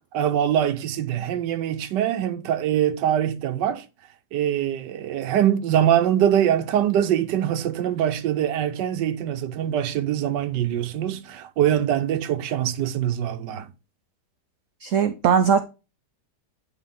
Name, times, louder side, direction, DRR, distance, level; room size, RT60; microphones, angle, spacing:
voice 1, 0.1-3.8 4.3-13.7, right 10 dB, 90° right, 1.3 m, -23 dB
voice 2, 14.8-15.6, right 7 dB, 70° right, 0.7 m, -19 dB
9.5 x 3.5 x 3.5 m
omnidirectional pair, 1.8 m